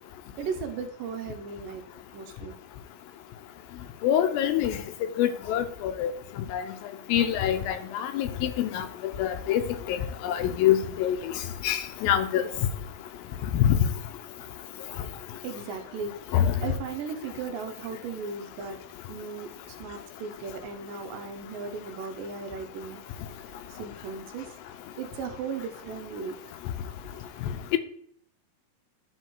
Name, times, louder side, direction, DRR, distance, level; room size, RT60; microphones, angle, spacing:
voice 1, 0.4-1.8 2.1-2.6 15.4-16.1 16.6-18.8 19.1-19.5 19.8-23.0 23.8-24.5 25.0-26.4, right 5 dB, 75° right, 6 dB, 2.3 m, -36 dB
voice 2, 4.0-4.8 5.2-6.1 6.5-6.6 7.1-8.9 9.2-9.6 9.9-11.2 11.6-12.4 13.5-13.8 16.3-16.5, left 10 dB, 80° left, 9 dB, 2.5 m, -25 dB
11.0 x 4.2 x 4.5 m, 0.64 s
omnidirectional pair, 4.2 m